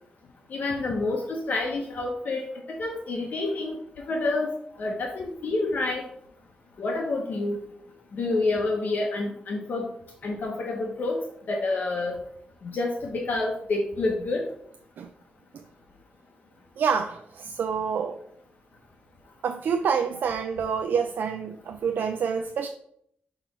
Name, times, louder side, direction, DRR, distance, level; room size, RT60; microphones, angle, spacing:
voice 1, 0.5-2.5 2.8-3.8 4.1-4.5 4.8-6.0 6.8-7.6 8.1-9.9 10.2-11.2 11.5-12.2 12.6-14.4, left 2 dB, 60° left, 1 dB, 0.8 m, -28 dB
voice 2, 16.8-18.2 19.4-22.7, right 6 dB, 80° right, 6 dB, 0.4 m, -27 dB
6.2 x 3.0 x 5.1 m, 0.70 s
wide cardioid pair, 145°, 3 cm